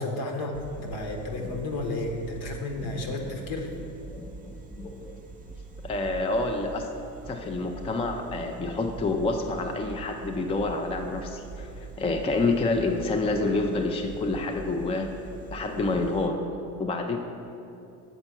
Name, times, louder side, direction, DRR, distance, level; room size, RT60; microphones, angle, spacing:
voice 1, 0.0-3.7, left 2 dB, 60° left, 2 dB, 1.3 m, -32 dB
sound 1, 0.5-16.3, right 3 dB, 20° right, 0.7 m, -43 dB
voice 2, 2.8-3.1 4.1-5.5 5.8-6.9 7.3-15.1 15.5-16.4 16.8-17.2, left 2 dB, 15° left, 4 dB, 0.4 m, -28 dB
7.0 x 4.3 x 5.9 m, 2.8 s
hypercardioid pair, 75°, 44 cm